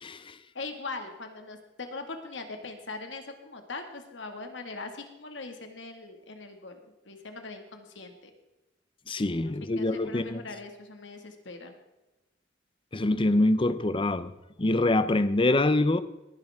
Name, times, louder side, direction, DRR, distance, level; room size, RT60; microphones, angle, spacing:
voice 1, 0.0-0.4 9.1-10.4 12.9-14.3 14.6-16.0, left 2 dB, 30° left, 0.7 m, -25 dB
voice 2, 0.5-6.8 7.1-8.3 9.4-11.8, left 3 dB, 85° left, 2.0 m, -41 dB
19.0 x 11.0 x 3.6 m
head